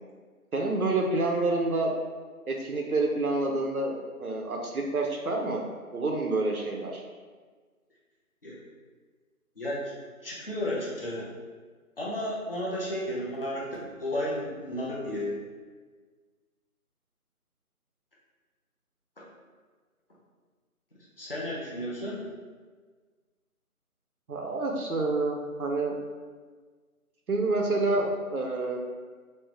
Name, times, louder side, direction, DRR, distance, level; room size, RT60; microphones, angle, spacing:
voice 1, 0.5-1.9 2.5-5.6 5.9-7.0 24.3-26.0 27.3-28.8, right 2 dB, 75° right, 1 dB, 0.6 m, -28 dB
voice 2, 9.6-9.9 10.2-11.3 12.0-15.3 19.2-19.3 21.2-22.3, left 1 dB, 40° left, -5 dB, 0.7 m, -33 dB
3.2 x 3.0 x 3.0 m, 1.5 s
figure-of-eight pair, 160°, 44 cm